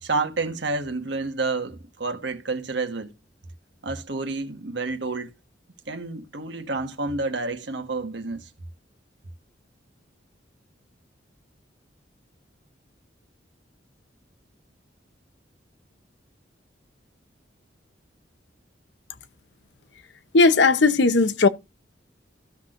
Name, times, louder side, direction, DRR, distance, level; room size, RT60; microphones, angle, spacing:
voice 1, 0.0-3.1 3.8-5.3 5.9-8.5, right 3 dB, 65° right, 1.5 m, -29 dB
voice 2, 20.3-21.5, left 3 dB, 65° left, 0.9 m, -17 dB
15.5 x 6.0 x 2.5 m
head